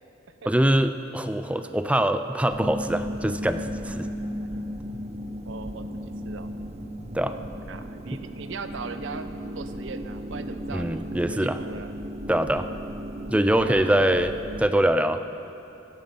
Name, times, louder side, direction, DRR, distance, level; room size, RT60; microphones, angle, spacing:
voice 1, 0.5-4.1 7.1-7.3 10.7-11.6 12.3-12.7 13.3-15.2, right 1 dB, 5° right, 9 dB, 0.4 m, -23 dB
sound 1, 2.5-14.7, equal, 35° right, 0.7 m, -35 dB
voice 2, 5.5-6.5 7.3-9.3 9.5-11.9 13.5-13.9, right 4 dB, 70° right, 9 dB, 0.7 m, -39 dB
16.0 x 11.5 x 5.4 m, 2.9 s
head